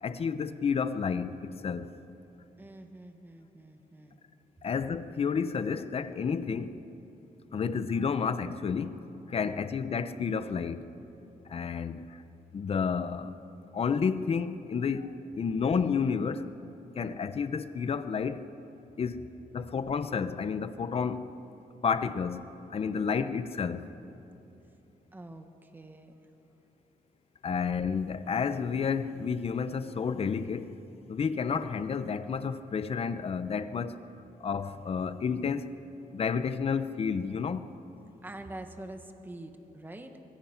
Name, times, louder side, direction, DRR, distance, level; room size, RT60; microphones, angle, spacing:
voice 1, 0.0-1.9 4.6-6.8 7.5-10.8 11.5-12.2 12.5-13.3 13.7-16.5 16.9-18.5 19.0-21.4 21.8-22.4 22.7-23.9 27.4-30.8 31.1-33.9 34.4-35.7 36.1-37.6, left 6 dB, 40° left, 12 dB, 0.8 m, -31 dB
voice 2, 2.6-4.2 9.4-9.7 25.1-26.1 38.2-40.2, right 1 dB, 15° right, 6 dB, 1.3 m, -45 dB
24.5 x 22.5 x 5.8 m, 3.0 s
wide cardioid pair, 170°, 15 cm